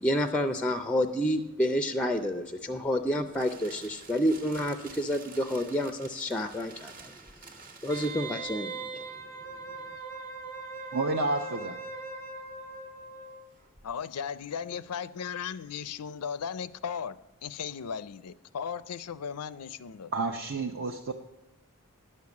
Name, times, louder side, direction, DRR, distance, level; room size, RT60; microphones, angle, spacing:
voice 1, 0.0-7.1 7.8-9.0, equal, 5° left, 8 dB, 0.4 m, -29 dB
sound 1, 2.8-8.5, right 4 dB, 40° right, 1.2 m, -50 dB
Wind instrument woodwind instrument, 7.9-13.4 13.8-13.9, right 3 dB, 85° right, 1.7 m, -40 dB
voice 2, 10.9-11.8 20.1-21.1, right 3 dB, 60° right, 2 dB, 0.7 m, -30 dB
voice 3, 13.8-17.2 17.4-20.1, left 7 dB, 90° left, 16 dB, 0.5 m, -36 dB
11.0 x 6.6 x 7.1 m, 1.0 s
head